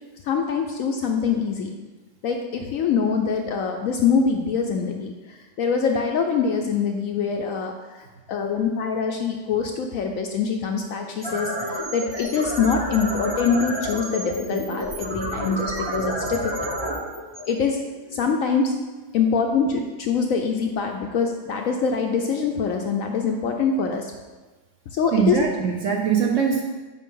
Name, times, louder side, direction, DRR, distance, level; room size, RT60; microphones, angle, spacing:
voice 1, 0.2-1.7 2.2-16.7 17.5-17.8 18.1-18.7 19.1-24.1 24.9-25.4, left 5 dB, 70° left, 3 dB, 0.8 m, -24 dB
sound 1, 11.0-18.1, equal, 20° right, 0.6 m, -30 dB
sound 2, 15.8-17.5, right 2 dB, 85° right, 2.0 m, -38 dB
voice 2, 25.1-26.6, right 6 dB, 65° right, 1 dB, 0.8 m, -21 dB
7.5 x 5.4 x 3.7 m, 1.3 s
omnidirectional pair, 1.8 m